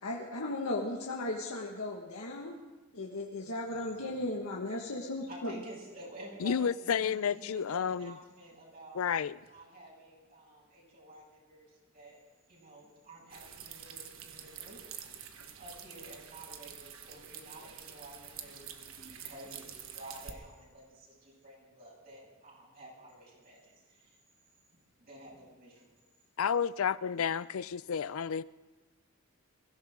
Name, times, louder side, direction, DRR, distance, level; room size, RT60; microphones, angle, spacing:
voice 1, 0.0-2.6 2.9-5.6, left 2 dB, 90° left, 1.7 m, -36 dB
voice 2, 3.7-4.2 4.8-5.0 5.3-9.1 9.4-12.2 12.5-14.8 15.1-24.2 25.0-26.1, right 1 dB, 45° right, 6.9 m, -51 dB
voice 3, 6.4-8.2 8.9-9.4 26.4-28.4, left 7 dB, 70° left, 0.4 m, -31 dB
sound 1, 13.3-20.3, right 8 dB, 70° right, 1.3 m, -47 dB
23.0 x 16.0 x 3.8 m
head